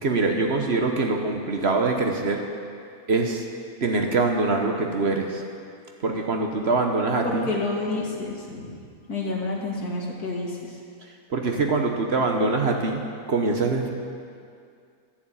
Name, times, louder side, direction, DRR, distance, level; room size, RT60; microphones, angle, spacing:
voice 1, 0.0-2.4 3.1-3.4 3.8-5.4 6.0-7.5 11.3-13.9, right 3 dB, 50° right, 3 dB, 1.1 m, -24 dB
voice 2, 7.2-8.8 9.1-10.8, left 3 dB, 85° left, -2 dB, 2.3 m, -29 dB
11.5 x 7.3 x 8.6 m, 2.3 s
omnidirectional pair, 1.6 m